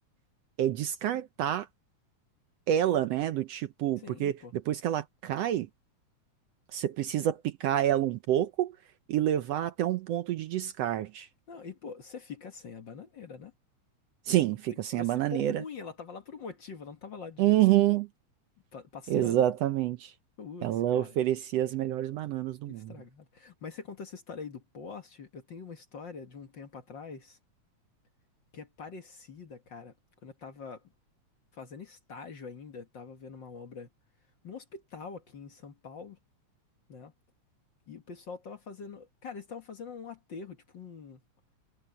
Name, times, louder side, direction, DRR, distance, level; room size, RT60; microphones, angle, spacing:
voice 1, 0.6-1.7 2.7-5.7 6.7-8.7 9.1-11.3 14.3-15.6 17.4-18.1 19.1-20.1 20.6-22.9, right 12 dB, 70° right, 1.7 m, -28 dB
voice 2, 4.0-4.5 11.5-13.5 14.7-17.7 18.7-19.4 20.4-21.2 22.7-27.4 28.5-29.9 30.2-30.9 31.5-33.9 34.4-36.2 36.9-37.1 37.9-41.2, left 5 dB, 45° left, 1.9 m, -44 dB
omnidirectional pair, 3.3 m